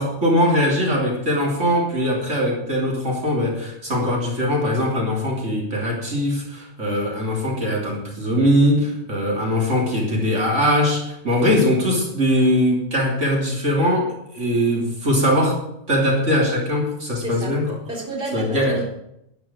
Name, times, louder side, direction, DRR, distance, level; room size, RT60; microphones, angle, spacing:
voice 1, 0.0-15.6 15.9-17.8 18.3-18.8, equal, 70° right, -2 dB, 3.6 m, -21 dB
voice 2, 17.2-17.5 17.9-18.8, right 2 dB, 45° right, -1 dB, 3.7 m, -29 dB
11.5 x 9.8 x 7.3 m, 0.80 s
omnidirectional pair, 1.3 m